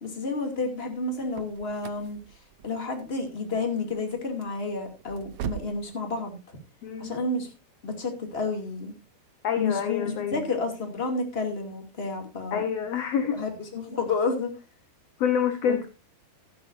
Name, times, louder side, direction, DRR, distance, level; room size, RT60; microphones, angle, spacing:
voice 1, 0.0-2.2 2.6-6.6 7.0-7.5 7.8-8.9 9.6-12.7 13.3-14.5 15.7-15.8, left 3 dB, 20° left, 3 dB, 2.4 m, -30 dB
sound 1, 0.9-5.9, right 11 dB, 80° right, 1.7 m, -41 dB
voice 2, 6.8-7.1 9.4-10.4 12.5-13.4 15.2-15.9, left 8 dB, 65° left, 8 dB, 1.7 m, -27 dB
15.5 x 11.5 x 2.6 m, 0.28 s
omnidirectional pair, 4.2 m